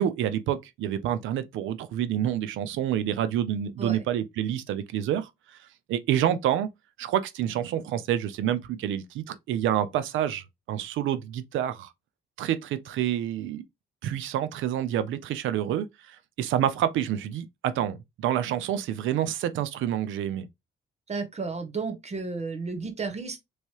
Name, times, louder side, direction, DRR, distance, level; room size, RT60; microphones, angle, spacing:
voice 1, 0.0-5.3 5.9-6.7 7.0-11.9 12.4-13.6 14.0-20.5, right 11 dB, 80° right, 0.5 m, -28 dB
voice 2, 21.1-23.5, right 4 dB, 35° right, 0.9 m, -33 dB
3.1 x 2.7 x 2.9 m
cardioid pair, 90°, 20 cm